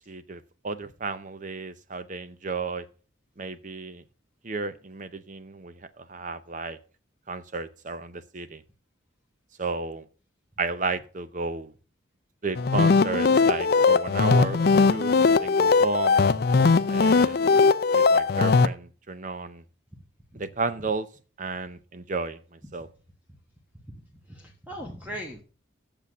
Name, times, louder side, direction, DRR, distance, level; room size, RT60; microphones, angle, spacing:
voice 1, 0.1-2.9 3.4-4.0 4.4-6.8 7.3-8.6 9.6-10.0 10.6-11.7 12.4-16.2 16.9-17.4 17.9-19.6 20.3-21.1 21.4-22.9, right 3 dB, 40° right, 13 dB, 0.7 m, -33 dB
sound 1, 12.5-18.7, left 4 dB, 50° left, 0.4 m, -20 dB
voice 2, 24.3-25.4, equal, 10° right, 1 dB, 1.1 m, -39 dB
8.3 x 6.9 x 6.2 m, 0.38 s
head